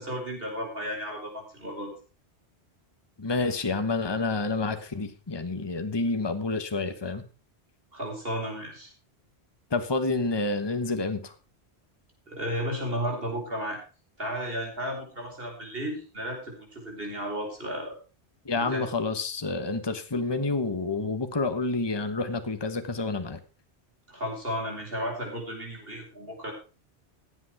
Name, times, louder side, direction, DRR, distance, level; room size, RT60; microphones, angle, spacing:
voice 1, 0.0-1.9 7.9-8.9 12.3-13.8 14.2-18.0 18.5-18.9 24.1-26.5, equal, 55° right, 0 dB, 5.3 m, -33 dB
voice 2, 3.2-7.2 9.7-11.3 18.4-23.4, left 3 dB, 25° left, 9 dB, 1.2 m, -29 dB
16.5 x 8.1 x 4.8 m, 0.35 s
omnidirectional pair, 1.1 m